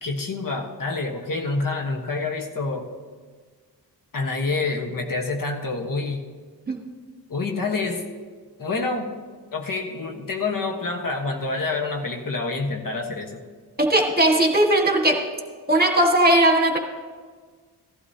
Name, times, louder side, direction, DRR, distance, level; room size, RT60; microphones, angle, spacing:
voice 1, 0.0-2.9 4.1-6.2 7.3-8.0 8.6-9.1 9.5-13.4, left 3 dB, 55° left, 2 dB, 1.3 m, -27 dB
voice 2, 13.8-15.3 15.7-16.8, right 1 dB, 20° right, 2 dB, 1.7 m, -18 dB
16.0 x 12.0 x 2.8 m, 1.6 s
cardioid pair, 60°, 40 cm